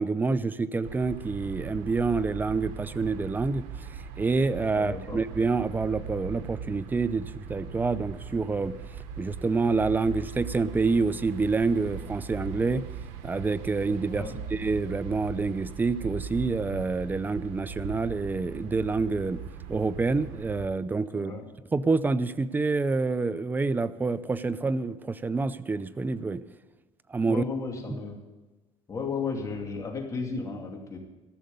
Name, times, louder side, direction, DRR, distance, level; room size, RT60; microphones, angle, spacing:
voice 1, 0.0-3.6 4.2-8.7 9.2-12.8 13.2-14.2 14.5-19.4 19.7-21.3 21.7-26.4 27.1-27.4, right 4 dB, 15° right, 15 dB, 0.5 m, -27 dB
sound 1, 0.8-20.7, right 6 dB, 85° right, 1.2 m, -39 dB
voice 2, 4.7-5.2 14.1-14.4 21.1-21.5 27.3-28.2 28.9-31.0, left 4 dB, 30° left, 1 dB, 2.7 m, -34 dB
14.5 x 6.6 x 9.3 m, 1.1 s
cardioid pair, 120°, 12 cm